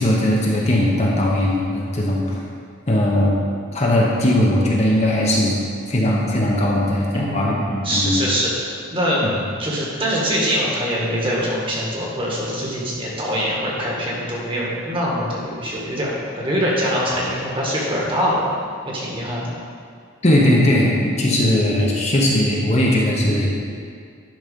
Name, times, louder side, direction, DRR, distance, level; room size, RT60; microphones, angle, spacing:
voice 1, 0.0-2.4 2.9-3.4 3.7-5.6 5.9-8.2 20.2-23.5, left 1 dB, 35° left, -3 dB, 0.9 m, -18 dB
voice 2, 7.1-9.2 9.6-18.4 18.8-19.5, equal, 25° right, -4 dB, 1.6 m, -23 dB
10.5 x 4.1 x 5.3 m, 2.2 s
head